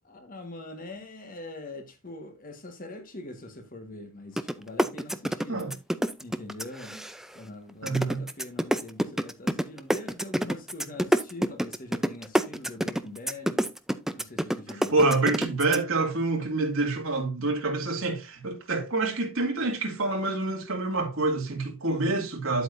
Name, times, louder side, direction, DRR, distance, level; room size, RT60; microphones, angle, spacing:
voice 1, 0.0-5.6 6.2-7.0 7.3-13.7 14.1-15.0, left 2 dB, 40° left, 1.4 m, -43 dB
sound 1, 4.4-4.5 4.8-7.4 7.9-15.8, equal, ahead, 0.4 m, -26 dB
voice 2, 7.8-8.2 14.7-22.6, right 3 dB, 70° right, 2.2 m, -27 dB
8.9 x 8.1 x 2.6 m
head